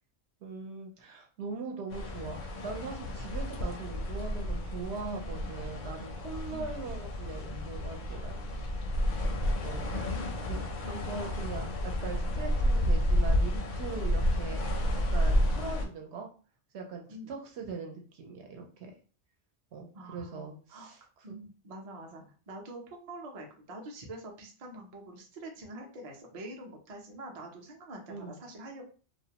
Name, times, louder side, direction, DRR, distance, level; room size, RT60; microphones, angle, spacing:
voice 1, 0.4-8.4 9.6-9.9 10.5-10.6 10.9-16.3 16.7-18.9 19.7-21.0 21.3-21.4 28.1-28.4, right 4 dB, 75° right, 2 dB, 0.9 m, -41 dB
sound 1, 1.9-15.9, equal, 60° left, 0.5 m, -31 dB
voice 2, 10.1-10.5 10.8-11.3 17.1-17.3 19.9-20.9 21.2-28.9, right 1 dB, 45° right, 1 dB, 0.5 m, -45 dB
2.4 x 2.1 x 2.8 m, 0.38 s
omnidirectional pair, 1.2 m